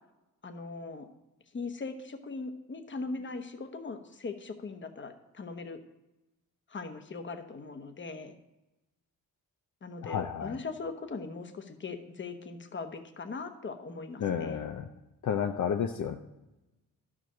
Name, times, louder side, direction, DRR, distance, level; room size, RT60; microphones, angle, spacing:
voice 1, 0.4-1.1 1.5-5.8 6.7-8.4 9.8-14.6, left 4 dB, 35° left, 7 dB, 1.1 m, -40 dB
voice 2, 10.0-10.6 14.2-14.9 15.2-16.2, left 8 dB, 60° left, 5 dB, 0.7 m, -31 dB
12.0 x 5.0 x 6.2 m, 0.99 s
cardioid pair, 95°, 34 cm